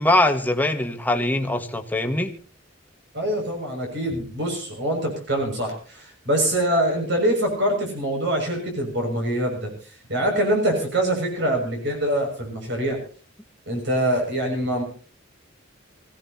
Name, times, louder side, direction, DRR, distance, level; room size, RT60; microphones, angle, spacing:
voice 1, 0.0-2.3, left 1 dB, 10° left, 5 dB, 1.6 m, -22 dB
voice 2, 3.1-9.7 10.1-13.0 13.7-14.8, right 1 dB, 60° right, 2 dB, 6.5 m, -24 dB
25.5 x 16.5 x 2.9 m, 0.41 s
head